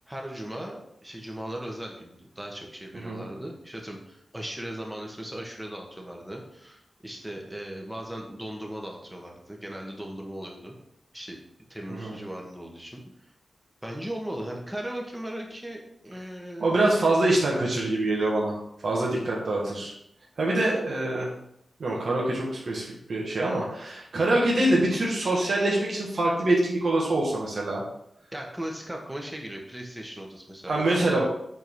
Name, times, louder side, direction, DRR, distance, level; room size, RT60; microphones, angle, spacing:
voice 1, 0.1-10.8 11.1-11.4 11.7-13.0 13.8-16.9 28.3-31.2, right 1 dB, 5° right, 0 dB, 1.3 m, -38 dB
voice 2, 2.9-3.3 11.9-12.2 16.6-18.6 18.8-19.9 20.4-21.3 21.8-27.8 30.7-31.2, right 2 dB, 60° right, -3 dB, 1.6 m, -25 dB
7.9 x 3.8 x 4.7 m, 0.75 s
wide cardioid pair, 140°, 0 cm